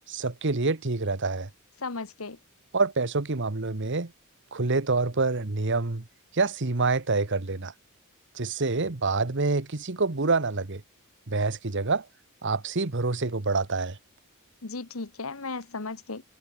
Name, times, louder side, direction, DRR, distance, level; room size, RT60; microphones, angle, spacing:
voice 1, 0.1-1.5 2.7-4.1 4.5-6.0 6.3-7.7 8.3-10.8 11.3-12.1 12.4-14.0, right 3 dB, 60° right, 1.3 m, -27 dB
voice 2, 1.8-2.4 14.6-16.2, left 3 dB, 75° left, 1.5 m, -35 dB
head